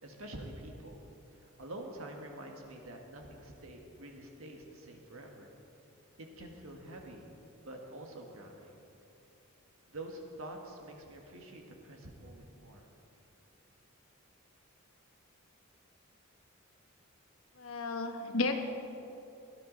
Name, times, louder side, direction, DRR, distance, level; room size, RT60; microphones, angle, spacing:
voice 1, 0.0-1.0 1.3-5.5 6.2-7.3 7.6-8.8 9.9-12.9, right 1 dB, 75° right, 2 dB, 1.7 m, -47 dB
voice 2, 17.6-18.5, left 3 dB, 75° left, 5 dB, 1.1 m, -33 dB
17.5 x 11.5 x 4.0 m, 2.9 s
head